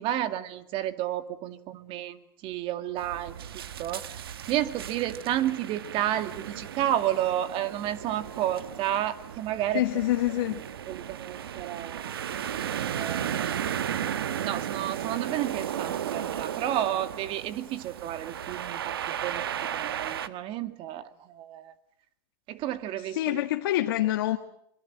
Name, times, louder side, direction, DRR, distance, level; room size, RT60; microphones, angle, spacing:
voice 1, 0.0-3.4 3.8-4.2 4.5-9.8 10.9-12.2 12.8-13.8 14.4-19.0 19.2-19.4 19.7-21.7 22.5-23.4, right 12 dB, 45° right, 11 dB, 2.2 m, -31 dB
sound 1, 3.0-20.3, right 9 dB, 90° right, 1.3 m, -35 dB
voice 2, 9.7-10.6 23.0-24.4, left 15 dB, 75° left, 6 dB, 1.6 m, -26 dB
25.5 x 23.5 x 7.5 m, 0.74 s
hypercardioid pair, 115°, 12 cm